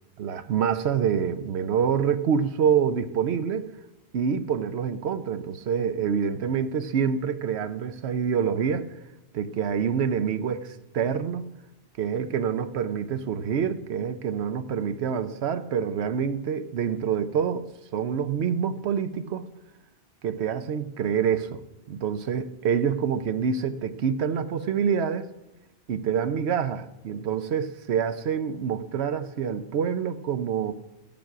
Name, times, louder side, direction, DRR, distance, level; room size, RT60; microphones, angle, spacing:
voice 1, 0.2-3.7 4.1-8.9 9.3-11.4 12.0-17.7 17.9-19.4 20.2-21.6 21.9-25.3 25.9-30.7, right 7 dB, 80° right, 11 dB, 0.9 m, -26 dB
15.0 x 7.3 x 5.8 m, 0.94 s
omnidirectional pair, 1.1 m